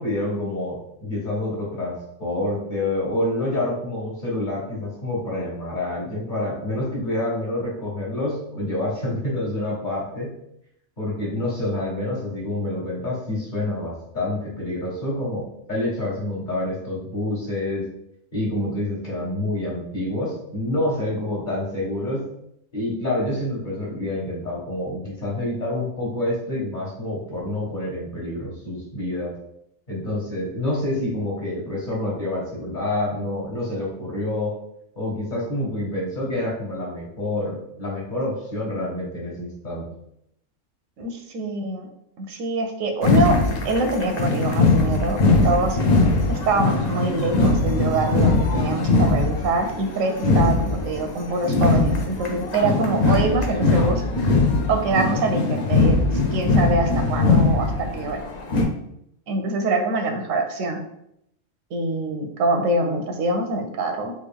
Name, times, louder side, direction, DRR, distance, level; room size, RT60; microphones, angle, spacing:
voice 1, 0.0-10.3 11.0-17.8 18.3-22.3 22.7-29.3 29.9-34.5 35.0-39.9, left 1 dB, 40° left, -5 dB, 1.3 m, -27 dB
voice 2, 41.0-41.9 42.2-43.4 43.6-45.8 46.3-54.0 54.7-58.2 59.3-60.8 61.7-64.1, right 2 dB, 85° right, 5 dB, 1.0 m, -24 dB
sound 1, 43.0-58.6, left 3 dB, 60° left, 0.4 m, -21 dB
3.4 x 2.5 x 3.4 m, 0.76 s
omnidirectional pair, 1.3 m